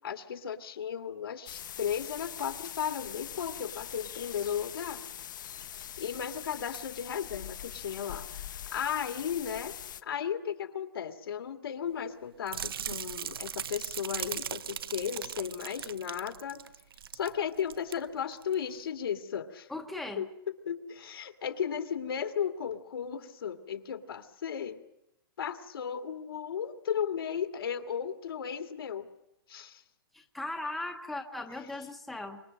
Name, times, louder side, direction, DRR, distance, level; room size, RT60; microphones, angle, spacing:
voice 1, 0.0-5.0 6.0-9.8 10.0-16.6 17.1-19.7 20.2-24.8 25.4-29.1 29.5-29.8, left 8 dB, 75° left, 6 dB, 2.1 m, -35 dB
sound 1, 1.5-10.0, left 10 dB, 55° left, 0.9 m, -43 dB
sound 2, 12.5-17.3 17.6-17.9 18.4-18.5, right 8 dB, 75° right, 1.0 m, -38 dB
voice 2, 19.7-20.2 30.1-32.4, left 2 dB, ahead, 2 dB, 0.9 m, -38 dB
25.5 x 23.5 x 6.5 m, 0.85 s
hypercardioid pair, 175°, 12 cm